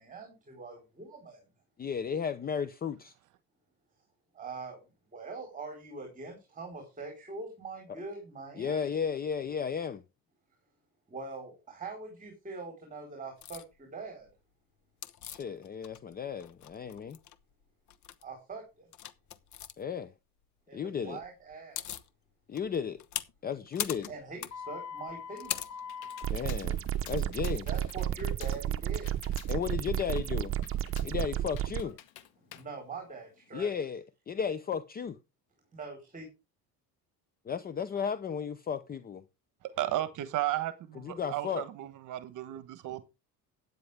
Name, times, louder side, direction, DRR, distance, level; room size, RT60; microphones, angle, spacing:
voice 1, 0.0-1.4 4.3-4.8 5.1-8.8 11.1-14.3 18.2-18.9 20.7-21.8 24.1-25.8 27.7-29.2 32.5-33.8 35.7-36.3, right 3 dB, 20° right, 4.3 m, -43 dB
voice 2, 1.8-3.1 7.9-8.0 8.6-10.0 15.3-17.2 19.8-20.1 20.7-21.2 22.5-23.0 23.4-24.1 26.3-27.7 29.5-30.6 31.0-31.9 33.5-35.2 37.4-39.2 41.0-41.6, left 7 dB, 25° left, 0.7 m, -34 dB
sound 1, 13.4-13.6 15.0-16.1 16.4-17.3 17.9-18.2 18.9-19.7 21.2-21.3 21.5-22.1 22.6-26.3, left 10 dB, 50° left, 1.2 m, -39 dB
Computer keyboard, 25.1-33.7, left 12 dB, 90° left, 1.7 m, -53 dB
sound 2, 26.2-31.8, right 11 dB, 40° right, 1.0 m, -32 dB
voice 3, 39.6-43.0, right 14 dB, 55° right, 1.2 m, -34 dB
13.0 x 9.5 x 3.5 m
cardioid pair, 150°, 36 cm